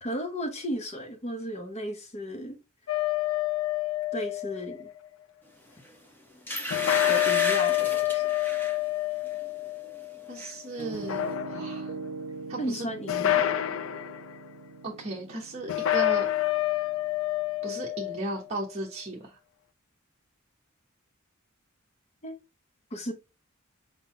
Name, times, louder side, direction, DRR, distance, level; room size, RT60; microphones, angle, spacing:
voice 1, 0.0-2.6 4.1-4.9 7.1-8.2 12.6-13.4 22.2-22.4 22.9-23.1, equal, 30° left, 1.0 m, -34 dB
sound 1, 2.9-4.9 6.7-10.4 10.9-11.9 13.1-14.2 15.7-18.4, left 14 dB, 70° left, 0.4 m, -28 dB
sound 2, 5.8-5.9 6.5-8.8 9.3-9.5 9.8-10.5 10.8-10.9, equal, 10° left, 1.2 m, -34 dB
voice 2, 10.3-11.9 12.5-12.9 14.8-16.3 17.6-19.4, right 2 dB, 30° right, 1.1 m, -36 dB
Piano, 10.8-18.6, right 4 dB, 80° right, 0.5 m, -43 dB
4.6 x 3.9 x 3.0 m
head